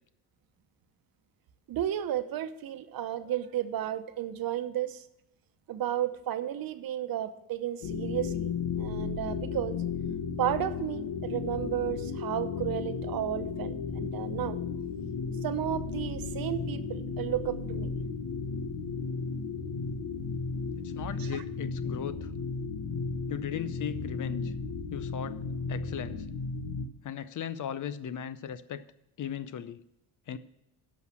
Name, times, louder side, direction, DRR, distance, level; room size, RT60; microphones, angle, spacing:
voice 1, 1.7-5.0 5.7-9.8 10.4-14.6 15.4-17.9 21.2-21.4, right 11 dB, 65° right, 0.9 m, -33 dB
sound 1, 7.8-26.9, left 5 dB, 80° left, 1.1 m, -34 dB
voice 2, 20.8-22.3 23.3-24.5 24.9-25.4 25.7-26.3 27.0-28.8 29.2-29.8 30.3-30.4, left 8 dB, 50° left, 0.7 m, -37 dB
11.0 x 6.5 x 6.1 m
cardioid pair, 105°, 38 cm